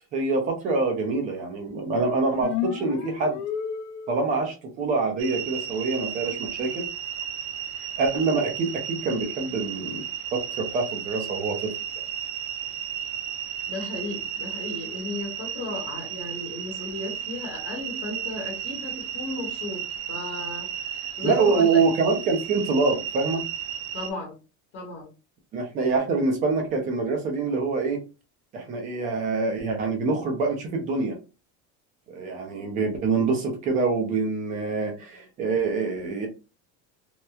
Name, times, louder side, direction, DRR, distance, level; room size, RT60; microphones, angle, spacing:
voice 1, 0.1-3.4 4.1-6.9 8.0-10.0 10.3-11.7 21.2-23.4 25.5-28.0 28.5-31.2 32.1-36.3, right 4 dB, 20° right, 0.4 m, -25 dB
sound 1, 2.4-4.4, left 9 dB, 75° left, 0.5 m, -31 dB
sound 2, 5.2-24.1, right 9 dB, 70° right, 0.5 m, -34 dB
voice 2, 13.7-21.8 23.9-24.3 24.7-25.1, left 2 dB, 35° left, 0.9 m, -35 dB
2.9 x 2.1 x 2.3 m
cardioid pair, 175°, 36 cm